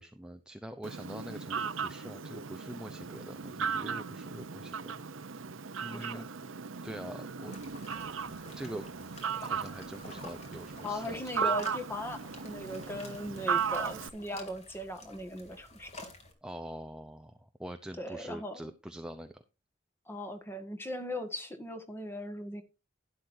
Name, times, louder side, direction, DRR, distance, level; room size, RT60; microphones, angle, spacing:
voice 1, 0.0-4.9 5.8-6.3 6.8-7.6 8.2-9.1 9.4-11.5 16.4-19.4, right 1 dB, 5° right, 0.7 m, -44 dB
Fowl, 0.8-14.1, right 6 dB, 85° right, 0.8 m, -37 dB
sound 1, 7.5-16.3, left 1 dB, 35° left, 2.9 m, -49 dB
voice 2, 10.8-15.9 18.0-18.7 20.1-22.6, left 1 dB, 10° left, 1.7 m, -39 dB
12.0 x 10.5 x 2.7 m
head